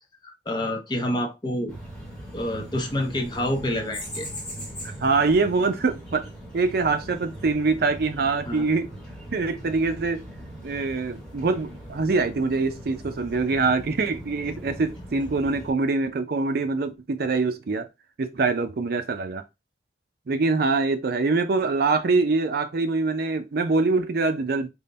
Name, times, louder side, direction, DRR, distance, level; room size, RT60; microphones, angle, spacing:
voice 1, 0.2-1.7 2.3-4.3 8.4-8.7, left 1 dB, 25° left, 0.7 m, -28 dB
sound 1, 1.7-15.7, equal, 5° left, 1.2 m, -40 dB
voice 2, 4.8-8.9 9.3-10.2 10.6-17.9 18.2-19.4 20.3-24.7, right 3 dB, 60° right, 0.5 m, -24 dB
3.7 x 2.2 x 3.9 m
head